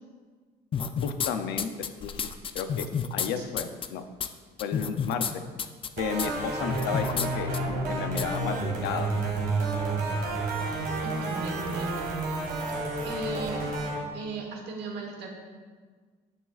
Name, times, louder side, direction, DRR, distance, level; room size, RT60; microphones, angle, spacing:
sound 1, 0.7-1.3 1.6-3.3 3.6-3.9 4.2-4.3 4.6-5.3 5.6-5.9 6.2-6.3 6.7-7.3 7.5-7.6 8.2-8.3, left 7 dB, 30° left, 0.4 m, -30 dB
voice 1, 1.0-1.7 2.0-2.3 2.5-2.9 3.1-4.0 4.6-5.4 6.0-9.1, left 7 dB, 90° left, 8 dB, 0.6 m, -33 dB
sound 2, 6.0-14.0, right 3 dB, 60° right, 1.9 m, -30 dB
voice 2, 11.0-12.1 13.0-13.7 14.1-15.3, right 3 dB, 80° right, 2 dB, 1.4 m, -36 dB
9.8 x 7.0 x 2.5 m, 1.5 s
cardioid pair, 110°, 17 cm